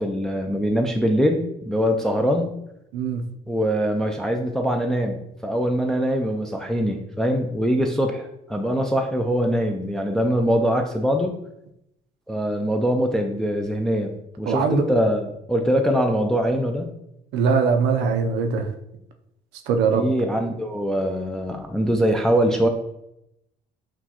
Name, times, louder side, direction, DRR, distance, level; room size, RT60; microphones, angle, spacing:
voice 1, 0.0-2.5 3.5-11.4 12.3-16.9 19.9-22.7, equal, 5° left, 3 dB, 0.3 m, -23 dB
voice 2, 2.9-3.2 14.5-14.8 17.3-18.7 19.7-20.1, right 5 dB, 90° right, 6 dB, 0.6 m, -21 dB
6.0 x 2.3 x 2.9 m, 0.82 s
cardioid pair, 110°, 17 cm